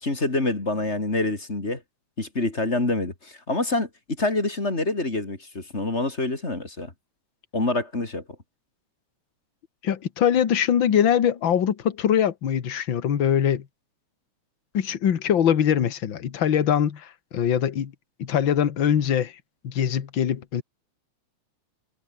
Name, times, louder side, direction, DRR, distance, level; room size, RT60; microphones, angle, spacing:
voice 1, 0.0-1.8 2.2-3.9 4.2-6.9 7.5-8.2, left 2 dB, 20° left, 3.2 m, -26 dB
voice 2, 9.8-13.7 14.7-17.9 18.2-19.3 19.6-20.6, left 9 dB, 45° left, 2.0 m, -22 dB
omnidirectional pair, 3.4 m